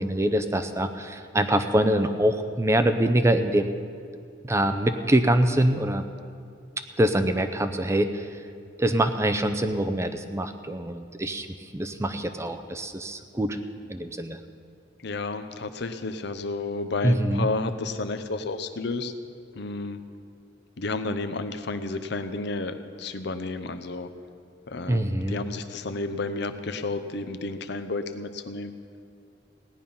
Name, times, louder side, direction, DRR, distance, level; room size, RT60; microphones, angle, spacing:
voice 1, 0.0-3.7 4.4-6.0 7.0-8.3 8.8-11.5 11.7-13.6 13.9-14.4 17.0-17.5 24.9-25.4, right 1 dB, 15° right, 8 dB, 0.5 m, -24 dB
voice 2, 15.0-19.1 19.6-20.0 20.8-24.1 24.7-28.7, left 3 dB, 60° left, 9 dB, 0.7 m, -31 dB
17.0 x 10.5 x 5.5 m, 2.4 s
head